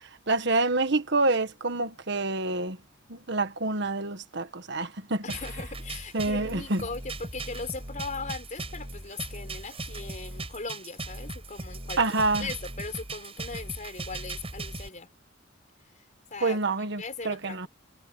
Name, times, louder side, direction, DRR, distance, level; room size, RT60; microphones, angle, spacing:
voice 1, 0.3-2.8 3.1-5.2 6.1-6.8 12.0-12.5 16.4-17.7, right 3 dB, 60° right, 1.5 m, -27 dB
voice 2, 5.2-12.0 12.4-15.1 16.3-16.6 17.0-17.7, left 4 dB, 40° left, 4.3 m, -39 dB
sound 1, 5.3-14.9, right 2 dB, 30° right, 6.4 m, -38 dB
head